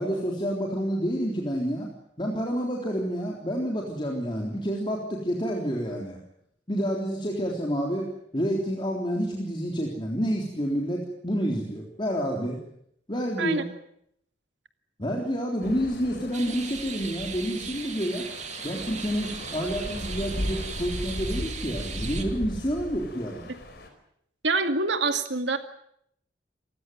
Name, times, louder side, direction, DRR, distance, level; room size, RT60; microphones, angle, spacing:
voice 1, 0.0-1.9 2.2-6.2 6.7-12.6 13.1-13.7 15.0-18.3 18.6-23.5, equal, 25° left, -1 dB, 3.7 m, -29 dB
sound 1, 15.6-23.9, left 1 dB, 60° left, 4.7 m, -37 dB
sound 2, 16.3-22.2, right 6 dB, 40° right, 2.8 m, -38 dB
voice 2, 24.4-25.6, right 3 dB, 75° right, 8 dB, 2.3 m, -25 dB
28.0 x 15.5 x 9.4 m, 0.74 s
head